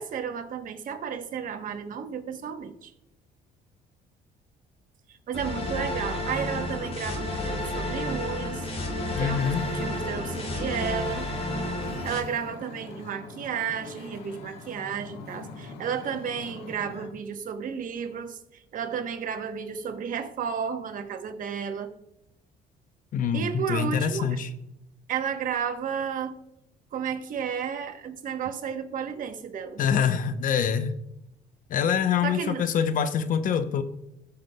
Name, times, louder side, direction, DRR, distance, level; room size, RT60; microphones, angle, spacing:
voice 1, 0.0-2.9 5.1-8.7 9.2-11.3 12.0-21.9 23.3-24.4 25.1-26.4 26.9-29.8 32.2-32.6, right 7 dB, 55° right, 8 dB, 1.0 m, -32 dB
sound 1, 5.3-12.2, left 1 dB, 35° left, 2.8 m, -31 dB
voice 2, 9.1-9.6 23.1-24.5 29.8-31.0 31.7-33.8, left 7 dB, 50° left, 11 dB, 0.7 m, -25 dB
Wind / Ocean, 9.2-17.1, left 3 dB, 90° left, 1.3 m, -43 dB
17.0 x 5.7 x 2.2 m, 0.84 s
cardioid pair, 110°, 17 cm